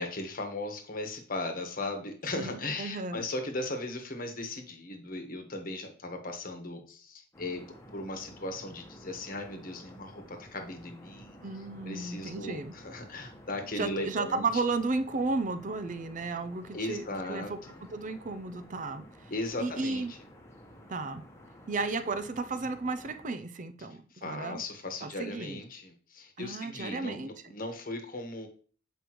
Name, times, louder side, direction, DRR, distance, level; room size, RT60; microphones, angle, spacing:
voice 1, 0.0-7.6 7.9-11.4 11.8-14.5 16.7-17.8 19.3-20.2 24.2-28.5, left 2 dB, 45° left, 5 dB, 1.3 m, -37 dB
voice 2, 2.3-3.2 11.4-12.7 13.7-17.6 17.9-19.0 19.6-20.1 20.9-21.2 21.7-24.6 25.0-25.6 26.4-27.3, right 3 dB, 40° right, 10 dB, 0.5 m, -33 dB
sound 1, 7.3-23.3, equal, 15° left, 1.1 m, -52 dB
7.7 x 5.0 x 3.1 m, 0.42 s
head